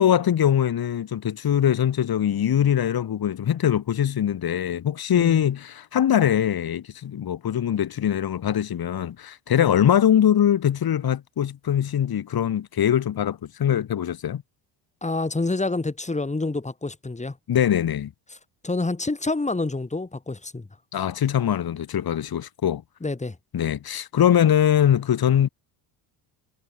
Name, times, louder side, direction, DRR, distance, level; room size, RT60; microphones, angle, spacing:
voice 1, 0.0-14.4 17.5-18.1 20.9-22.8 23.5-25.5, left 10 dB, 45° left, 4.5 m, -22 dB
voice 2, 15.0-17.4 18.6-20.7 23.0-23.4, left 3 dB, 15° left, 5.0 m, -27 dB
supercardioid pair, 95°, 49 cm